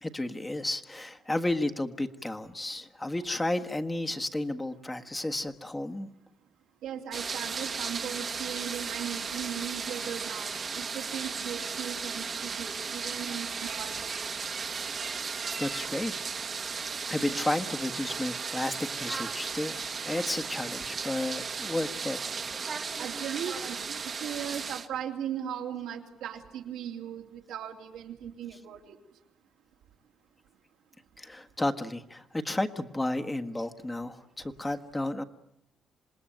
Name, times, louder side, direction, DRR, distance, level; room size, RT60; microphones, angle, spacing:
voice 1, 0.0-6.1 15.6-16.1 17.1-22.2 31.2-35.2, left 1 dB, 15° left, 7 dB, 1.5 m, -32 dB
voice 2, 6.8-14.2 23.0-29.0, right 9 dB, 85° right, 2 dB, 3.0 m, -38 dB
sound 1, 7.1-24.9, right 5 dB, 45° right, 1.4 m, -35 dB
27.0 x 19.5 x 9.2 m, 0.84 s
cardioid pair, 90°, 0 cm